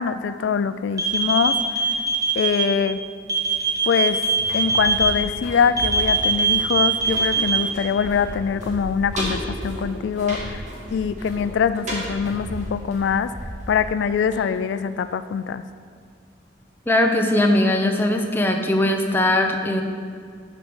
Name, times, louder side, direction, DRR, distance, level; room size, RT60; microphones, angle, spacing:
voice 1, 0.0-1.6 2.4-3.0 3.9-4.2 4.5-10.6 10.9-13.3 13.7-15.6, left 6 dB, 75° left, 12 dB, 0.3 m, -23 dB
sound 1, 1.0-2.6 3.3-5.1 5.8-7.6, right 4 dB, 20° right, 1.2 m, -21 dB
sound 2, 4.2-15.1 15.4-15.5, equal, 40° right, 2.0 m, -34 dB
voice 2, 16.9-19.8, left 1 dB, 10° left, 3 dB, 0.7 m, -20 dB
9.8 x 5.1 x 6.2 m, 2.1 s
head